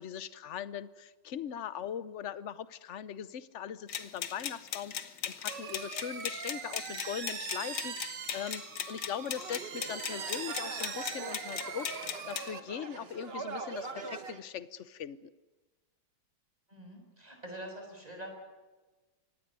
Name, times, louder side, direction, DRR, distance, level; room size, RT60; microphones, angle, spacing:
voice 1, 0.0-5.0 5.3-11.9 12.3-15.3, left 9 dB, 50° left, 16 dB, 1.0 m, -40 dB
sound 1, 3.9-12.5, left 9 dB, 75° left, 2.1 m, -39 dB
sound 2, 5.5-12.6, right 7 dB, 60° right, 2.1 m, -42 dB
sound 3, 9.4-14.4, right 4 dB, 35° right, 1.4 m, -43 dB
voice 2, 16.7-18.3, right 1 dB, 20° right, 3 dB, 6.5 m, -45 dB
25.0 x 18.0 x 9.8 m, 1.2 s
omnidirectional pair, 2.1 m